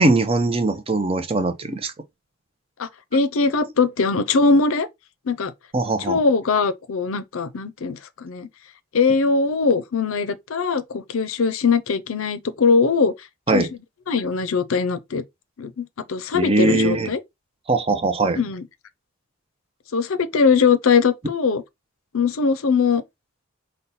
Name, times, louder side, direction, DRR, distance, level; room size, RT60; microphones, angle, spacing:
voice 1, 0.0-1.9 5.7-6.2 13.5-13.7 16.3-17.1 17.7-18.4, right 2 dB, 25° right, 0.5 m, -20 dB
voice 2, 2.8-4.9 5.3-5.5 6.1-8.5 8.9-13.1 13.5-13.7 14.1-15.2 15.6-17.2 18.4-18.6 19.9-21.6 22.1-23.0, left 4 dB, 70° left, 0.6 m, -21 dB
5.4 x 2.2 x 4.1 m
head